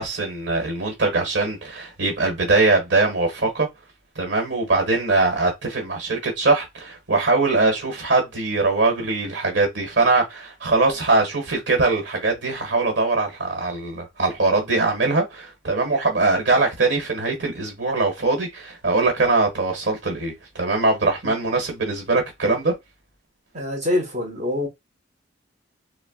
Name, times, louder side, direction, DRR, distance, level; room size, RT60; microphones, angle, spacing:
voice 1, 0.0-3.7 4.1-22.7, right 3 dB, 60° right, 1.3 m, -22 dB
voice 2, 23.5-24.7, left 1 dB, 35° right, 1.0 m, -25 dB
4.2 x 2.1 x 2.3 m
head